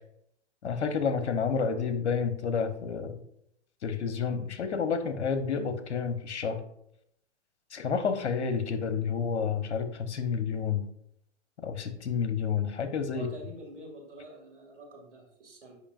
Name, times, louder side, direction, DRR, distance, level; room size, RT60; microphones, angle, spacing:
voice 1, 0.6-3.2 3.8-6.6 7.7-10.8 11.6-13.3, left 6 dB, 70° left, 8 dB, 1.0 m, -30 dB
voice 2, 13.1-15.8, right 1 dB, 80° right, 1 dB, 2.3 m, -47 dB
8.4 x 5.3 x 2.5 m, 0.74 s
hypercardioid pair, 115°, 35 cm